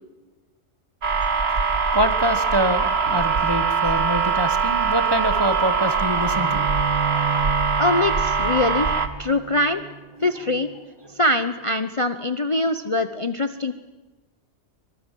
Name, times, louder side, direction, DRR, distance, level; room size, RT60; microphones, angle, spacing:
sound 1, 1.0-9.1, right 5 dB, 55° right, 1.8 m, -22 dB
voice 1, 1.9-6.7 10.2-10.3, right 1 dB, 20° right, 10 dB, 1.4 m, -25 dB
Bowed string instrument, 6.3-11.6, right 6 dB, 40° right, 0.9 m, -33 dB
voice 2, 7.8-9.8 10.2-10.7 11.2-13.7, left 2 dB, 30° left, 10 dB, 0.8 m, -23 dB
24.5 x 23.0 x 7.6 m, 1.2 s
omnidirectional pair, 1.3 m